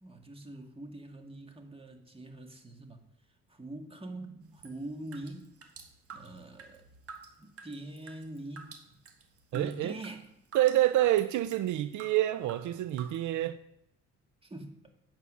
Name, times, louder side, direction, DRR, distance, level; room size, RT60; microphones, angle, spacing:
voice 1, 0.0-3.0 3.5-5.5 6.1-6.9 7.4-8.7 9.5-10.3 14.4-14.8, right 1 dB, 20° right, 4 dB, 1.8 m, -43 dB
sound 1, 4.6-12.2 12.5-13.3, right 5 dB, 50° right, 1.7 m, -50 dB
voice 2, 9.5-9.9 10.5-13.6, right 14 dB, 75° right, 13 dB, 0.5 m, -27 dB
9.2 x 7.1 x 6.2 m, 0.81 s
cardioid pair, 90°, 30 cm